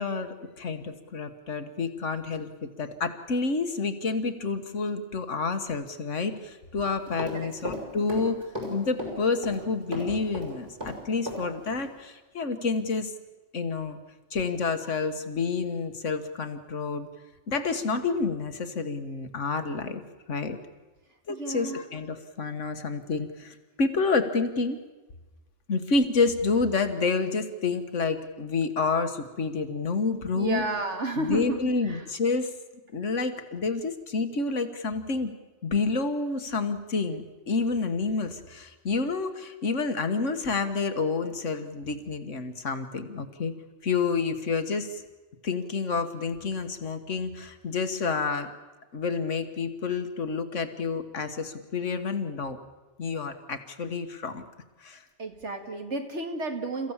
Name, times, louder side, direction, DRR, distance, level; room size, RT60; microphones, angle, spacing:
voice 1, 0.0-8.4 8.7-13.1 13.5-14.0 14.3-17.1 17.5-20.0 20.3-20.6 21.3-24.8 25.7-30.6 31.2-32.5 32.9-35.3 35.6-43.5 43.8-45.0 45.4-48.5 48.9-52.6 53.0-54.4 54.8-55.0, left 4 dB, 85° left, 8 dB, 1.8 m, -29 dB
Run, 6.8-7.8 8.1-9.6 9.9-11.4 11.7-11.8, left 1 dB, 45° right, 6.0 m, -35 dB
voice 2, 7.3-7.7 21.3-21.8 30.3-32.1 55.2-56.9, right 2 dB, 70° right, 4 dB, 2.5 m, -32 dB
30.0 x 15.0 x 7.3 m, 1.2 s
omnidirectional pair, 1.2 m